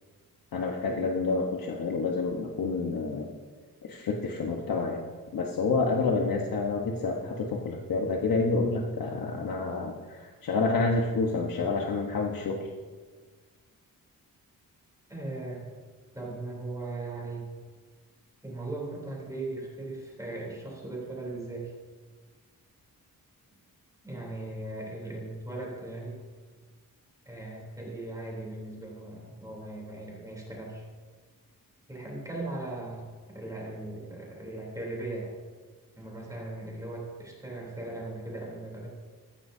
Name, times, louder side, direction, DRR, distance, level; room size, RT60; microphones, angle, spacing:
voice 1, 0.5-3.3 3.8-5.0 5.3-12.7, left 3 dB, 70° left, 0 dB, 1.3 m, -28 dB
voice 2, 15.1-15.6 16.1-17.5 18.4-21.7 24.0-26.2 27.2-30.8 31.9-35.3 36.0-38.9, right 2 dB, 10° right, -4 dB, 3.5 m, -38 dB
14.5 x 14.5 x 2.8 m, 1.5 s
wide cardioid pair, 140°, 35 cm